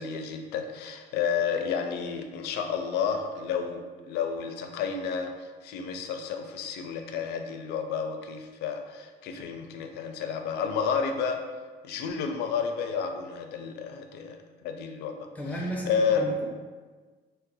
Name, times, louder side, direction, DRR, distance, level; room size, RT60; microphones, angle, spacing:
voice 1, 0.0-11.4 11.8-15.2 15.8-16.2, left 6 dB, 75° left, 5 dB, 0.4 m, -31 dB
voice 2, 15.3-16.5, equal, 10° left, -2 dB, 0.7 m, -34 dB
2.6 x 2.1 x 4.0 m, 1.4 s
cardioid pair, 110°, 17 cm